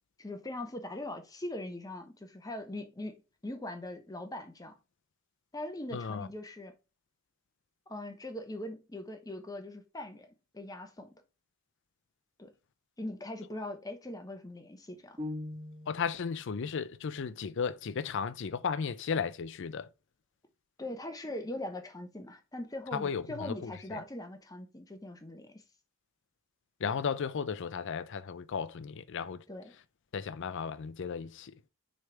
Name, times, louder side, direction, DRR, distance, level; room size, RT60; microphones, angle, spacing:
voice 1, 0.2-4.7 5.5-6.7 7.9-11.1 12.4-12.5 13.0-15.2 20.8-25.6 29.5-29.7, left 1 dB, 15° left, 0.9 m, -41 dB
voice 2, 5.9-6.3 15.9-19.9 22.9-24.0 26.8-29.4 30.1-31.5, left 6 dB, 55° left, 0.4 m, -35 dB
sound 1, 15.2-16.2, left 2 dB, 20° right, 1.1 m, -40 dB
6.4 x 3.4 x 4.5 m
head